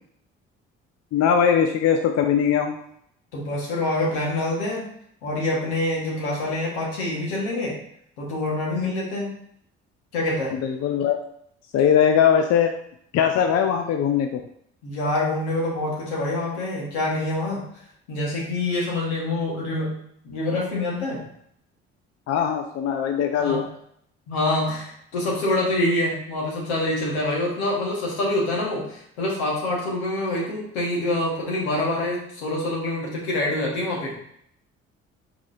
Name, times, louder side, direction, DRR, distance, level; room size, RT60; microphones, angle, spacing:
voice 1, 1.1-2.8 10.5-11.2 11.7-12.7 13.1-14.4 22.3-23.6, left 8 dB, 50° left, 6 dB, 0.5 m, -20 dB
voice 2, 3.3-4.9 5.2-7.8 8.2-9.4 10.1-10.6 14.8-17.6 18.1-20.0 20.2-21.2 23.4-23.6 24.3-34.1, left 2 dB, 80° left, -3 dB, 1.6 m, -26 dB
4.8 x 4.1 x 2.7 m, 0.69 s
hypercardioid pair, 50°, 33 cm